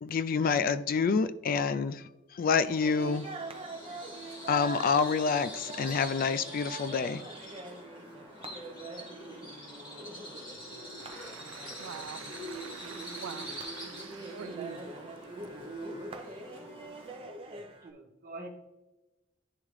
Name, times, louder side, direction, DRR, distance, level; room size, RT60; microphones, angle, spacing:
voice 1, 0.0-3.3 4.5-7.2, left 5 dB, 45° left, 0.3 m, -28 dB
Bird vocalization bird call bird song, 2.6-17.4, left 1 dB, 25° left, 2.1 m, -45 dB
sound 1, 2.8-17.9, right 3 dB, 25° right, 0.6 m, -44 dB
voice 2, 11.0-14.9, right 7 dB, 85° right, 0.4 m, -45 dB
voice 3, 15.2-15.6 16.1-16.8 17.2-18.5, right 2 dB, 45° right, 1.3 m, -49 dB
10.5 x 3.6 x 3.2 m
head